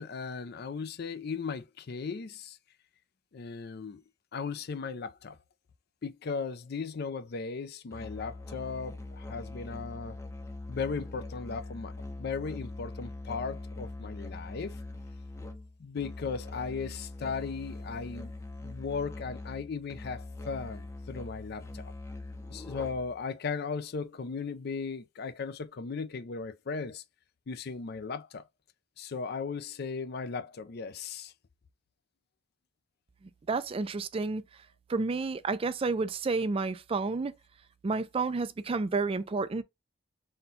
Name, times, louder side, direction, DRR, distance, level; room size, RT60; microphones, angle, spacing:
voice 1, 0.0-2.6 3.3-4.0 4.3-5.4 6.0-10.2 10.7-14.8 15.8-18.3 18.6-21.9 22.5-27.0 27.5-28.4 29.0-31.3, left 5 dB, 55° left, 0.4 m, -37 dB
Musical instrument, 7.9-23.2, left 2 dB, 15° left, 0.6 m, -42 dB
voice 2, 33.5-34.4 34.9-37.3 37.8-39.6, right 3 dB, 30° right, 0.4 m, -30 dB
4.2 x 2.2 x 3.8 m
head